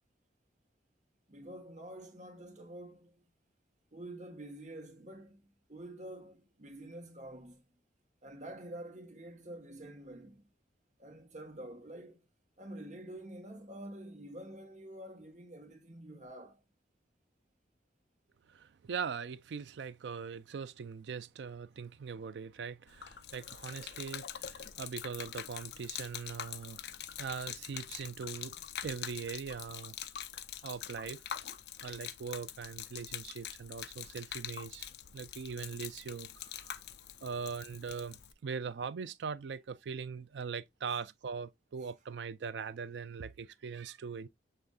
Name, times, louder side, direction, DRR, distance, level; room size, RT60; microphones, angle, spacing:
voice 1, 1.3-3.3 3.9-5.4 5.7-7.6 8.2-10.4 11.0-12.3 12.6-16.6, right 1 dB, 40° right, 1.3 m, -47 dB
voice 2, 18.5-26.8 27.2-28.6 28.8-30.0 30.6-31.2 31.8-36.7 37.2-44.3, right 6 dB, 75° right, 0.4 m, -41 dB
Gurgling / Liquid, 22.9-38.3, left 10 dB, 65° left, 0.4 m, -44 dB
6.7 x 3.4 x 2.3 m
head